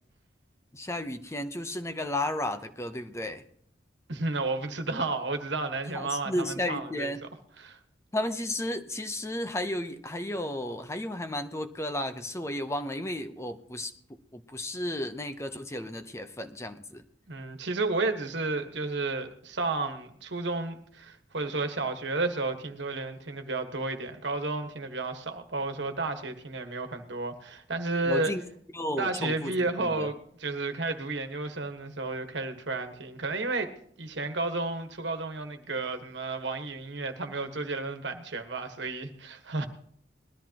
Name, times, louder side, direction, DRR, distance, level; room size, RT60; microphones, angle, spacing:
voice 1, 0.7-3.4 5.9-7.2 8.1-13.9 14.3-17.0 28.1-28.4 28.7-29.5 29.8-30.1, left 1 dB, 15° left, 0.7 m, -33 dB
voice 2, 4.1-7.1 7.6-7.8 17.3-28.3 29.0-33.7 34.0-39.7, right 3 dB, 80° right, 1.5 m, -32 dB
20.5 x 13.0 x 2.9 m
head